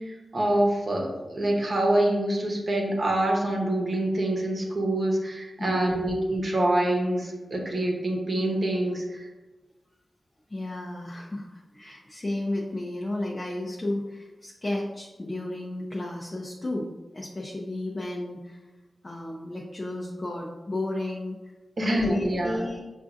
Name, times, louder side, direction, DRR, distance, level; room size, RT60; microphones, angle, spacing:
voice 1, 0.0-9.3 21.8-22.6, right 1 dB, 50° right, 0 dB, 0.9 m, -26 dB
voice 2, 5.6-6.0 10.5-16.9 17.1-18.7 19.0-21.4 21.8-22.8, left 1 dB, 35° left, -3 dB, 0.5 m, -33 dB
5.9 x 2.5 x 2.5 m, 1.2 s
wide cardioid pair, 80°, 0 cm